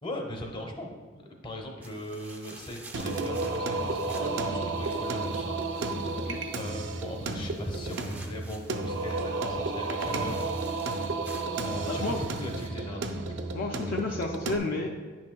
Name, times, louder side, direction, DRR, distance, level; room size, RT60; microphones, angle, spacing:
voice 1, 0.0-0.9 1.4-6.0 6.6-10.9 11.6-13.5 13.8-13.9, left 1 dB, 25° left, 2 dB, 0.8 m, -39 dB
sound 1, 1.8-12.7, right 2 dB, 10° right, 0.5 m, -51 dB
Singing, 2.9-14.6, right 3 dB, 65° right, 0.5 m, -32 dB
voice 2, 11.8-12.2 13.5-14.9, left 2 dB, 50° left, 1 dB, 0.4 m, -31 dB
9.6 x 6.0 x 2.2 m, 1.5 s
head